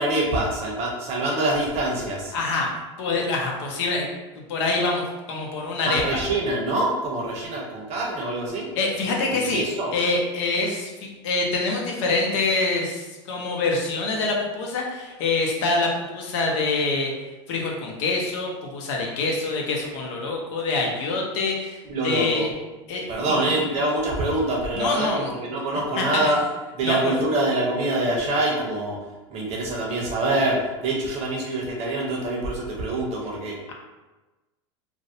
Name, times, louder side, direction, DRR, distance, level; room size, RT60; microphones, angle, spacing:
voice 1, 0.0-2.3 5.8-8.7 9.3-9.9 21.8-22.5 23.1-26.4 26.7-29.0 29.3-33.5, right 2 dB, 45° right, -2 dB, 0.8 m, -25 dB
voice 2, 2.3-2.7 3.0-4.1 4.5-5.0 5.3-6.2 8.8-9.6 9.9-17.1 17.5-22.5 22.9-23.0 23.3-23.4 24.7-25.3 26.0-26.3 26.8-27.1, left 3 dB, 70° left, 0 dB, 0.6 m, -25 dB
2.5 x 2.0 x 2.7 m, 1.1 s
hypercardioid pair, 105°, 16 cm